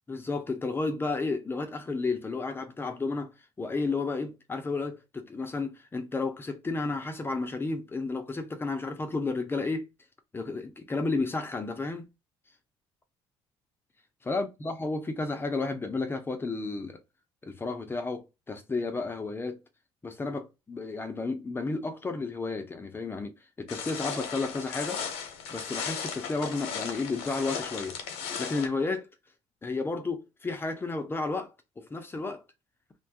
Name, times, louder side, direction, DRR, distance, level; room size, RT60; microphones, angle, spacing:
voice 1, 0.1-3.3 3.6-9.9 10.3-12.1 14.2-17.0 17.4-19.6 20.0-25.0 25.5-28.0 28.4-29.1 29.6-32.4, left 3 dB, 20° left, 0.5 m, -32 dB
sound 1, 23.7-28.7, left 6 dB, 90° left, 0.7 m, -36 dB
2.5 x 2.3 x 2.7 m
cardioid pair, 100°, 10 cm